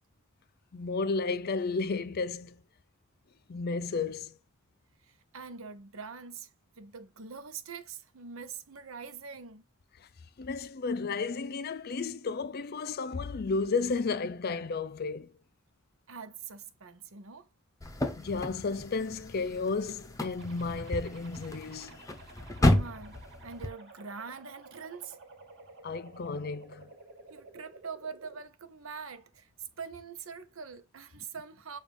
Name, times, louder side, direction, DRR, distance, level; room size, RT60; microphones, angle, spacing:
voice 1, 0.7-2.6 3.5-4.3 10.4-15.3 18.2-22.0 25.8-26.9, left 4 dB, 45° left, 0.5 m, -33 dB
voice 2, 5.0-6.5 6.8-9.6 16.1-17.5 22.6-25.2 27.3-29.5 29.8-31.8, right 5 dB, 75° right, 0.8 m, -44 dB
sound 1, 17.8-23.7, left 1 dB, 15° left, 0.8 m, -32 dB
sound 2, 20.4-28.4, right 3 dB, 60° right, 1.7 m, -52 dB
7.1 x 2.5 x 5.2 m
head